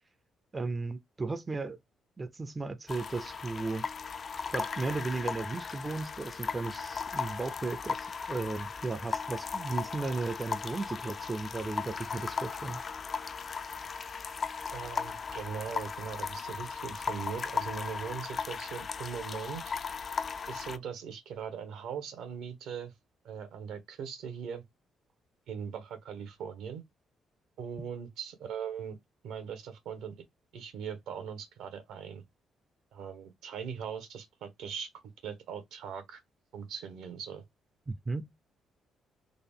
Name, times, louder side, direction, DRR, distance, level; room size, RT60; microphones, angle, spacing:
voice 1, 0.5-1.8 2.2-3.9 4.5-12.8 37.9-38.3, right 3 dB, 25° right, 0.4 m, -35 dB
sound 1, 2.9-20.8, left 5 dB, 45° left, 0.4 m, -37 dB
voice 2, 14.7-19.7 20.5-22.9 23.2-24.6 25.5-26.8 27.6-29.0 29.2-30.2 30.5-32.2 32.9-34.9 35.2-36.2 36.5-37.4, right 7 dB, 85° right, 1.0 m, -40 dB
3.9 x 2.0 x 3.4 m
cardioid pair, 90°, 0 cm